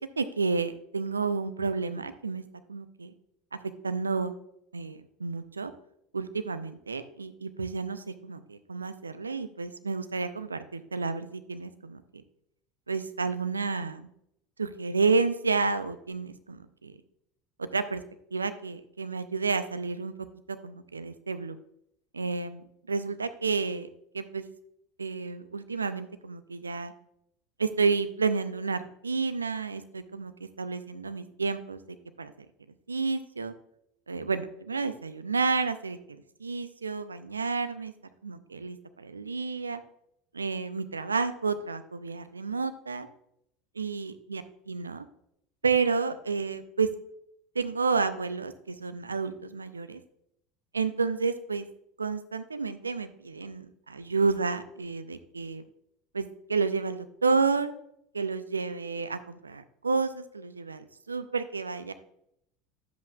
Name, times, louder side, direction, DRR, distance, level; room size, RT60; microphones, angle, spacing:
voice 1, 0.2-2.4 2.7-3.1 3.5-3.6 3.8-4.3 4.7-5.7 6.1-12.0 12.9-14.1 14.6-17.0 17.6-18.0 18.3-20.1 20.5-21.6 22.1-23.9 24.1-24.5 25.0-26.9 27.6-31.8 32.2-32.3 32.9-33.5 34.1-37.9 38.2-39.8 40.3-43.1 43.8-44.4 44.7-45.0 45.6-46.9 47.5-50.0 50.7-51.7 52.0-55.6 56.1-57.7 58.1-61.9, right 4 dB, 85° right, 11 dB, 0.5 m, -30 dB
10.5 x 7.8 x 2.3 m, 0.74 s
figure-of-eight pair, 75°, 0 cm